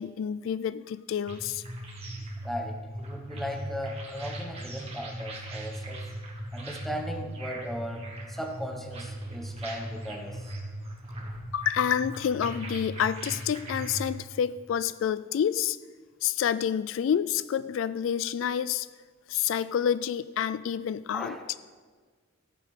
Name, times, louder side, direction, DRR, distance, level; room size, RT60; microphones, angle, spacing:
voice 1, 0.0-1.6 11.5-15.8 16.2-18.9 19.3-21.4, left 8 dB, 70° left, 17 dB, 0.3 m, -28 dB
sound 1, 1.3-14.1, right 1 dB, 30° right, 2.0 m, -39 dB
voice 2, 2.4-6.1 6.5-10.5 21.1-21.5, equal, ahead, 3 dB, 1.1 m, -37 dB
14.5 x 9.6 x 3.7 m, 1.5 s
head